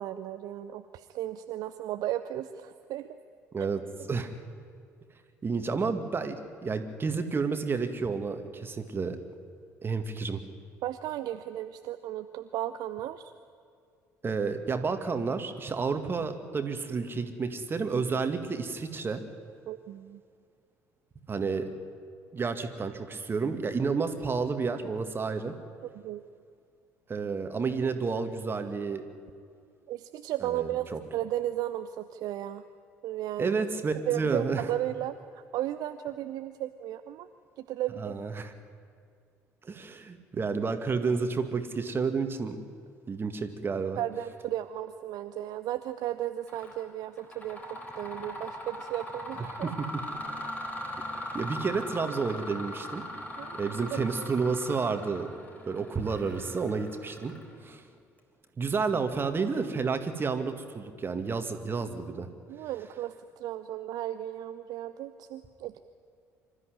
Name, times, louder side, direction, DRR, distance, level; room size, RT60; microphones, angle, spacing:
voice 1, 0.0-3.1 10.8-13.3 19.7-20.2 25.9-26.2 29.9-32.6 33.0-33.5 34.1-37.3 37.6-38.2 44.0-49.7 53.4-53.6 53.9-54.3 62.5-65.8, right 13 dB, 50° right, 10 dB, 0.7 m, -35 dB
voice 2, 5.4-9.2 9.8-10.4 14.2-19.2 21.3-21.7 22.3-25.5 27.1-29.0 30.4-31.0 33.4-34.6 38.0-38.5 39.6-42.6 43.1-44.0 49.6-49.9 51.3-53.0 53.5-55.4 55.7-57.3 57.6-57.8 58.6-62.3, right 4 dB, 25° right, 7 dB, 2.1 m, -30 dB
Mechanisms, 46.5-46.8 47.2-57.7, left 1 dB, 20° left, 4.2 m, -40 dB
25.5 x 13.5 x 9.6 m, 2.2 s
figure-of-eight pair, 55°, 8 cm